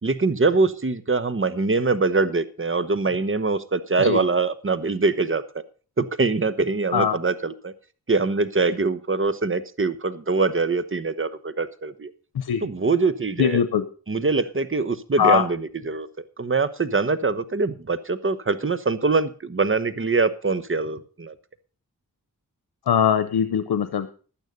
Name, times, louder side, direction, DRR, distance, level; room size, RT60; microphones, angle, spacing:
voice 1, 0.0-5.4 6.0-7.7 8.1-12.1 12.6-13.6 14.1-21.3, right 3 dB, 35° right, 14 dB, 1.1 m, -23 dB
voice 2, 13.4-13.8 15.2-15.4 22.9-24.1, left 8 dB, 90° left, 10 dB, 0.8 m, -21 dB
11.5 x 9.4 x 5.2 m, 0.38 s
cardioid pair, 50°, 37 cm